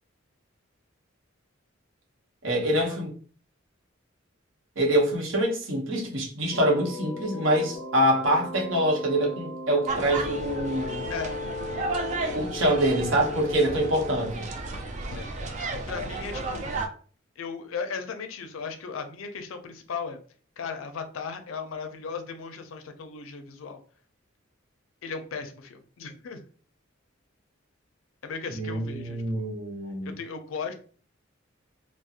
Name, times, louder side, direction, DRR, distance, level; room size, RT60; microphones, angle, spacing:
voice 1, 2.4-3.1 4.8-11.1 12.3-14.5 28.5-30.1, right 1 dB, 75° right, 0.8 m, -25 dB
sound 1, 6.5-14.1, left 3 dB, 30° left, 0.5 m, -37 dB
sound 2, 9.9-16.9, right 3 dB, 35° right, 0.3 m, -33 dB
voice 2, 15.9-16.7 17.4-20.2 20.6-23.8 25.0-26.4 28.2-29.5 30.0-30.7, left 5 dB, 80° left, 0.4 m, -36 dB
2.4 x 2.0 x 2.7 m
head